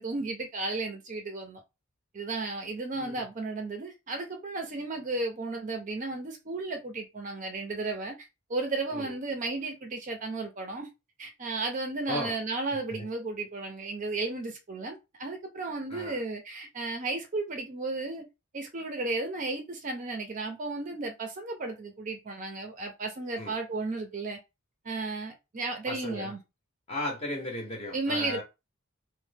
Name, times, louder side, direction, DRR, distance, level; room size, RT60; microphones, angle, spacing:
voice 1, 0.0-1.6 2.1-8.1 8.5-10.9 11.2-18.2 18.5-24.4 24.8-26.4 27.9-28.4, right 3 dB, 35° right, 0.4 m, -34 dB
voice 2, 25.9-26.3 26.9-28.4, left 1 dB, 30° left, 0.6 m, -35 dB
3.0 x 2.0 x 3.3 m
head